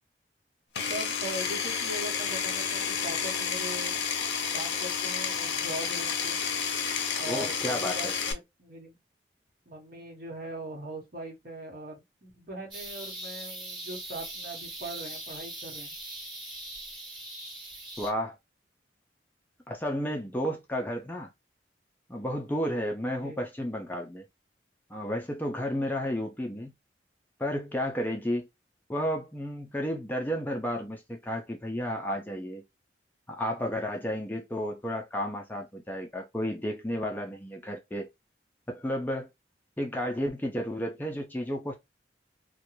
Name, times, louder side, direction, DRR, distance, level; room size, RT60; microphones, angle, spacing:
Power tool, 0.7-8.3, left 6 dB, 70° left, 0.5 m, -30 dB
voice 1, 0.9-4.0 4.5-6.4 7.2-9.0 9.7-15.9 23.1-23.4, right 1 dB, 50° right, 1.0 m, -41 dB
voice 2, 7.3-8.2 18.0-18.4 19.7-21.3 22.1-24.2 24.9-26.7 27.4-28.5 28.9-32.6 33.3-38.1 38.7-39.3 39.8-41.7, equal, 10° left, 0.3 m, -32 dB
sound 1, 12.7-18.1, right 2 dB, 25° right, 1.2 m, -41 dB
2.4 x 2.1 x 2.9 m
head